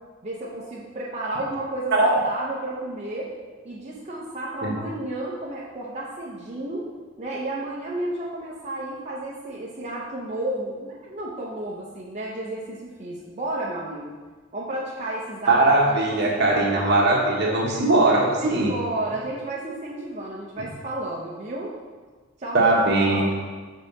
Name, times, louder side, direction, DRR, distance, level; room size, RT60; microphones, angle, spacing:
voice 1, 0.2-3.3 3.6-6.9 7.2-14.2 14.5-17.3 17.7-17.8 18.4-21.7 22.4-23.3, right 1 dB, 35° right, -6 dB, 0.8 m, -32 dB
voice 2, 15.5-18.7 22.5-23.3, right 2 dB, 55° right, -2 dB, 1.3 m, -20 dB
5.5 x 4.0 x 5.5 m, 1.4 s
head